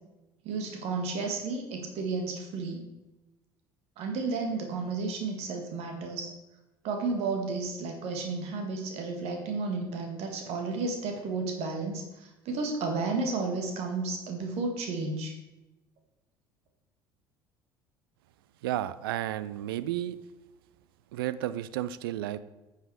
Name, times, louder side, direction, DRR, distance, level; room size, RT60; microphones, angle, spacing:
voice 1, 0.4-2.8 4.0-6.3 6.8-15.4, right 3 dB, 60° right, 3 dB, 1.6 m, -32 dB
voice 2, 18.6-20.2 21.1-22.4, right 13 dB, 75° right, 15 dB, 0.4 m, -32 dB
9.9 x 5.8 x 4.7 m, 1.0 s
hypercardioid pair, 65°, 12 cm